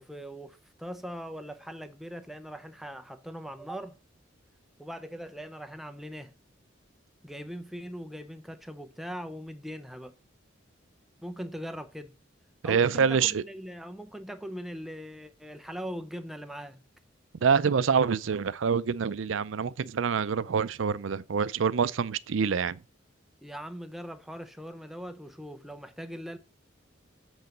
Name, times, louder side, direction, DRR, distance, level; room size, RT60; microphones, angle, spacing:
voice 1, 0.0-4.0 4.8-6.3 7.2-10.2 11.2-12.2 12.6-16.8 23.4-26.4, equal, ahead, 0.6 m, -40 dB
voice 2, 12.6-13.4 17.4-22.8, right 6 dB, 75° right, 0.5 m, -26 dB
8.0 x 4.0 x 6.5 m
head